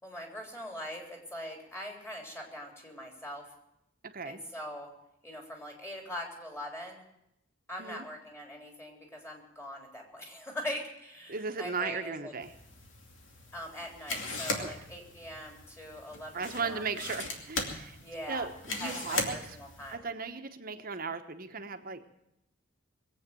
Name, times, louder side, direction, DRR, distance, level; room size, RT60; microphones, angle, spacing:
voice 1, 0.0-3.5 4.2-4.9 5.2-7.0 7.7-12.3 13.5-16.9 18.0-18.5 18.8-20.1, left 1 dB, 15° left, 1 dB, 3.7 m, -42 dB
voice 2, 4.0-4.4 7.8-8.0 11.3-12.5 14.6-14.7 16.3-18.0 18.3-19.6 19.9-22.1, right 4 dB, 50° right, 8 dB, 1.1 m, -37 dB
sound 1, 12.4-19.9, left 3 dB, 80° left, 2.6 m, -39 dB
22.0 x 8.5 x 7.7 m, 0.82 s
head